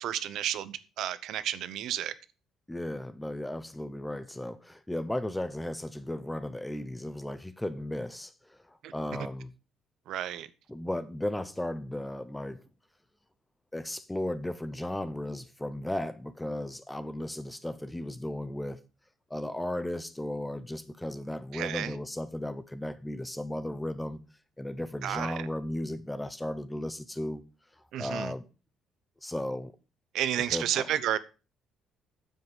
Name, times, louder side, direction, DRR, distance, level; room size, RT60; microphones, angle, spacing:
voice 1, 0.0-2.1 8.8-8.9 10.1-10.5 21.5-21.9 25.0-25.4 27.9-28.3 30.1-31.2, right 11 dB, 70° right, 0.8 m, -31 dB
voice 2, 2.7-9.5 10.7-12.6 13.7-18.8 19.3-24.2 24.6-27.4 28.0-28.5 29.2-29.7 30.5-30.9, left 1 dB, 5° left, 0.7 m, -35 dB
9.3 x 7.7 x 5.4 m
cardioid pair, 150°, 0 cm